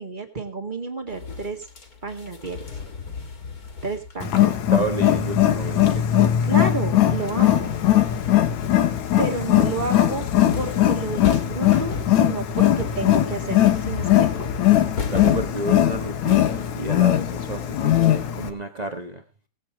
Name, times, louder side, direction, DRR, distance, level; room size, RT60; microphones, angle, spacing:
voice 1, 0.0-1.7 2.0-2.6 3.8-4.4 6.1-7.7 9.2-10.2 10.5-14.5, right 3 dB, 20° right, 1.7 m, -31 dB
sound 1, 1.1-6.5 6.8-18.4, left 5 dB, 35° left, 2.0 m, -36 dB
Wild animals, 4.2-18.5, left 12 dB, 75° left, 2.5 m, -20 dB
voice 2, 4.4-6.1 9.9-10.1 15.1-19.2, right 2 dB, 50° right, 0.5 m, -31 dB
19.5 x 8.4 x 4.6 m
omnidirectional pair, 3.4 m